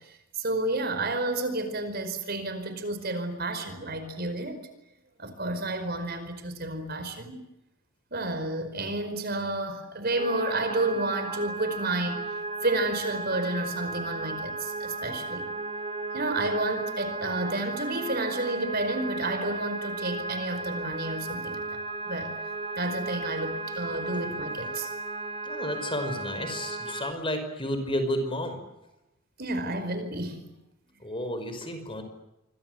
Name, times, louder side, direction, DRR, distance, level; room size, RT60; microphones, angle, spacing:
voice 1, 0.4-4.6 5.2-7.5 8.1-12.3 12.6-15.5 16.1-21.6 22.0-22.3 22.8-24.9 29.4-30.5, right 2 dB, 45° right, 9 dB, 5.0 m, -30 dB
sound 1, 10.2-27.1, right 2 dB, 25° right, 2.0 m, -35 dB
voice 2, 25.4-28.6 31.0-32.0, equal, 25° left, 8 dB, 5.2 m, -31 dB
27.0 x 24.5 x 7.9 m, 0.89 s
head